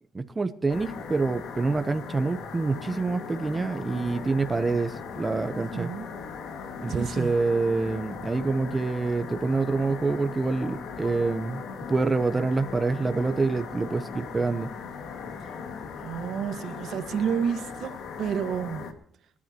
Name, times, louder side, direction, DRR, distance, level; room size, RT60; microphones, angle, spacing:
voice 1, 0.1-5.9 6.8-11.6 11.9-14.7, right 3 dB, 25° right, 0.9 m, -26 dB
sound 1, 0.7-18.9, left 6 dB, 80° left, 2.0 m, -39 dB
voice 2, 3.9-4.3 5.5-6.1 6.9-7.3 16.0-18.9, right 7 dB, 75° right, 1.5 m, -31 dB
28.5 x 11.5 x 3.0 m
cardioid pair, 90°, 0 cm